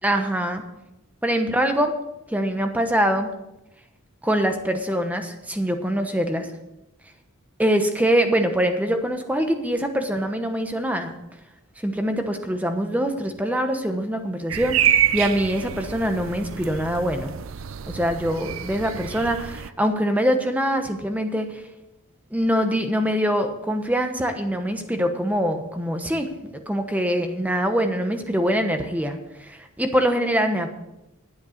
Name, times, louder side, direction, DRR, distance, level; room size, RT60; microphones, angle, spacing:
voice 1, 0.0-0.6 1.2-1.9 2.3-3.3 4.2-6.5 7.6-11.1 11.8-17.3 17.9-21.6 22.3-30.7, equal, 5° right, 6 dB, 1.0 m, -24 dB
sound 1, 14.5-19.7, right 10 dB, 65° right, 0.5 m, -27 dB
12.5 x 8.0 x 6.5 m, 0.93 s
head